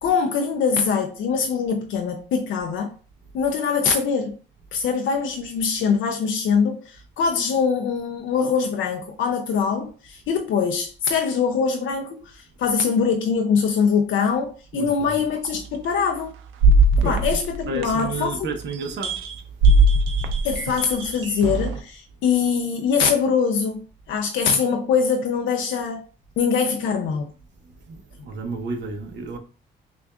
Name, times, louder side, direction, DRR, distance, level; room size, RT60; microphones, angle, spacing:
voice 1, 0.0-2.9 3.3-4.4 4.7-16.3 17.0-18.5 20.4-26.0 26.4-27.3, left 6 dB, 75° left, 0.5 m, -23 dB
voice 2, 14.7-15.2 17.0-17.4 17.7-19.2 27.9-29.4, right 3 dB, 65° right, 0.9 m, -31 dB
sound 1, 15.4-15.6 16.6-18.2 19.0-19.3 19.6-21.8, right 2 dB, 85° right, 0.6 m, -19 dB
5.9 x 2.4 x 2.3 m
cardioid pair, 90°, 20 cm